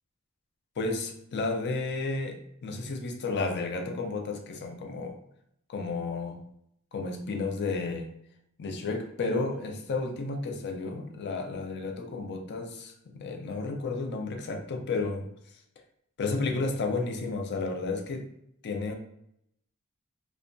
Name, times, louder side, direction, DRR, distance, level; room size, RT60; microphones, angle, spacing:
voice 1, 0.8-5.2 5.7-6.5 6.9-8.1 8.6-15.3 16.2-18.3 18.6-19.0, left 3 dB, 50° left, 4 dB, 0.4 m, -32 dB
2.6 x 2.2 x 2.5 m, 0.74 s
head